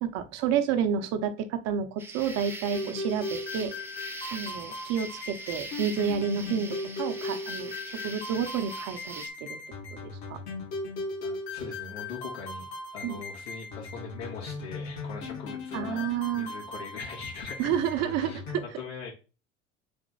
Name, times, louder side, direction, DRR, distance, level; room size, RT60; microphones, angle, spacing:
voice 1, 0.0-3.7 4.3-9.6 9.9-10.0 10.3-10.4 13.0-13.2 15.7-16.5 17.6-18.6, right 8 dB, 55° right, 8 dB, 0.8 m, -30 dB
sound 1, 2.0-9.3, right 2 dB, 10° right, 0.6 m, -42 dB
sound 2, 2.7-18.6, left 3 dB, 60° left, 2.1 m, -38 dB
voice 2, 11.2-17.7 18.0-18.4 18.8-19.1, left 5 dB, 85° left, -4 dB, 2.4 m, -41 dB
4.3 x 2.9 x 3.9 m, 0.32 s
hypercardioid pair, 75°, 31 cm